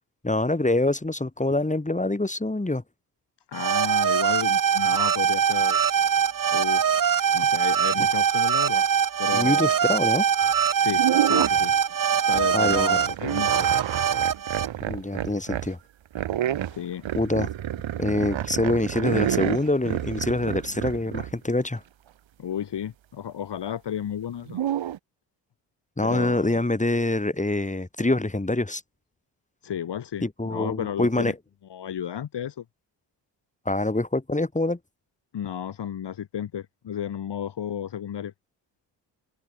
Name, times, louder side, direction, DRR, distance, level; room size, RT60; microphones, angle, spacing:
voice 1, 0.2-2.8 9.3-10.3 12.5-13.0 14.9-15.8 17.1-17.5 18.0-21.8 26.0-28.8 30.2-31.3 33.7-34.8, left 2 dB, 15° left, 7.0 m, -25 dB
voice 2, 3.5-5.8 6.5-6.8 7.3-8.9 9.2-9.7 10.8-11.7 12.3-13.7 16.7-17.0 22.4-24.6 26.0-26.6 29.6-31.3 31.7-32.6 35.3-38.3, left 9 dB, 60° left, 2.8 m, -33 dB
sound 1, 3.5-14.7, right 8 dB, 45° right, 1.5 m, -22 dB
sound 2, 10.4-10.6 10.9-11.8 12.3-15.7 16.2-21.4 24.5-25.0, right 11 dB, 70° right, 5.3 m, -29 dB
supercardioid pair, 55°, 47 cm